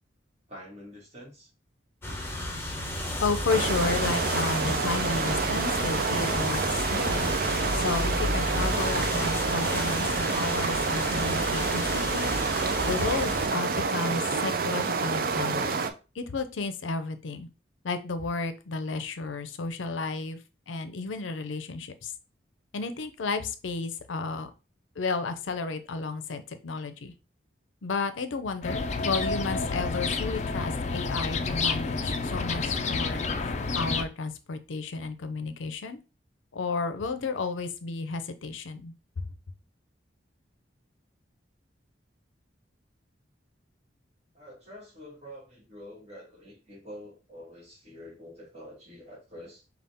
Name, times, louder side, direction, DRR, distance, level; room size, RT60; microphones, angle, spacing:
voice 1, 0.5-1.5 44.3-49.6, equal, 35° right, -3 dB, 1.8 m, -47 dB
sound 1, 2.0-13.5, left 1 dB, 10° left, 0.8 m, -32 dB
voice 2, 3.2-7.3 7.7-15.8 16.2-17.5 17.8-20.4 20.7-22.1 22.7-24.5 25.0-27.1 27.8-36.0 36.5-39.3, left 4 dB, 90° left, 10 dB, 0.5 m, -32 dB
sound 2, 3.5-15.9, right 4 dB, 50° right, 0.4 m, -28 dB
sound 3, 28.6-34.0, left 4 dB, 35° left, 0.4 m, -29 dB
5.4 x 2.4 x 3.5 m, 0.32 s
head